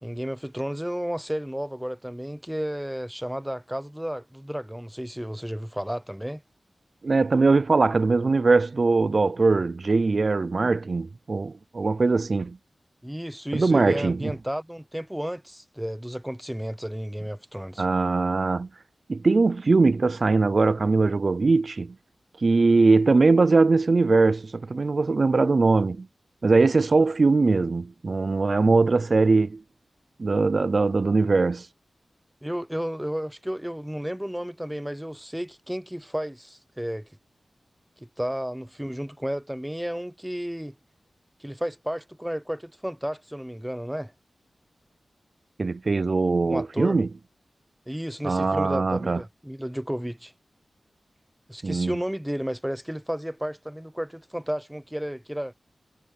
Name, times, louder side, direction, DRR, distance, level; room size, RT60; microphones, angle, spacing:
voice 1, 0.0-6.4 13.0-17.8 32.4-37.1 38.0-40.7 41.4-44.1 46.4-47.0 47.9-50.3 51.5-55.5, equal, 5° right, 0.6 m, -32 dB
voice 2, 7.0-12.6 13.5-14.3 17.8-18.7 19.1-21.9 22.4-26.1 26.4-29.6 30.2-31.7 45.6-47.1 48.2-49.2 51.6-52.0, right 3 dB, 55° right, 0.5 m, -21 dB
wide cardioid pair, 65°, 0 cm